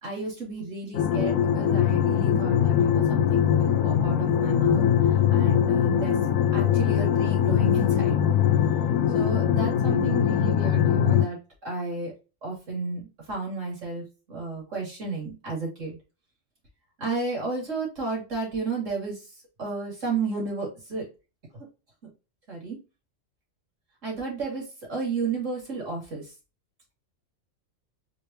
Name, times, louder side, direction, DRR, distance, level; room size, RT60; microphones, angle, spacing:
voice 1, 0.0-4.8 5.3-6.1 6.5-8.4 9.1-12.1 12.4-13.0 13.3-16.0 17.0-19.2 19.6-21.0 22.5-22.8 24.0-24.6 24.9-26.2, right 4 dB, 70° right, -2 dB, 2.8 m, -32 dB
sound 1, 0.9-11.3, left 9 dB, 85° left, 1.0 m, -22 dB
4.6 x 3.3 x 2.8 m, 0.30 s
omnidirectional pair, 1.3 m